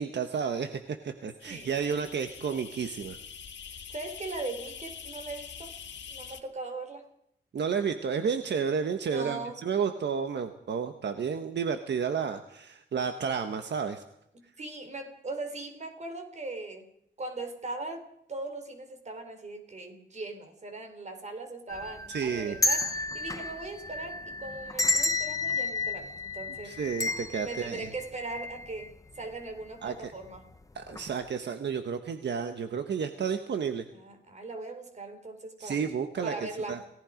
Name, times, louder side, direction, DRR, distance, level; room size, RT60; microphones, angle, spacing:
voice 1, 0.0-3.2 7.5-14.0 22.1-22.6 26.6-27.9 29.8-30.1 30.7-33.8 35.6-36.8, right 6 dB, 70° right, 7 dB, 1.3 m, -31 dB
sound 1, 1.4-6.4, left 7 dB, 75° left, 2.0 m, -44 dB
voice 2, 1.5-1.8 3.7-5.7 6.1-7.1 9.0-9.6 14.6-16.9 17.2-18.0 18.3-26.8 27.4-30.4 33.9-35.8 36.2-36.8, right 3 dB, 40° right, 7 dB, 4.1 m, -39 dB
sound 2, 21.7-28.9 29.2-29.3 30.2-30.5 30.9-31.1, left 2 dB, 20° left, 0.9 m, -32 dB
29.0 x 18.0 x 5.2 m, 0.74 s
wide cardioid pair, 160°, 19 cm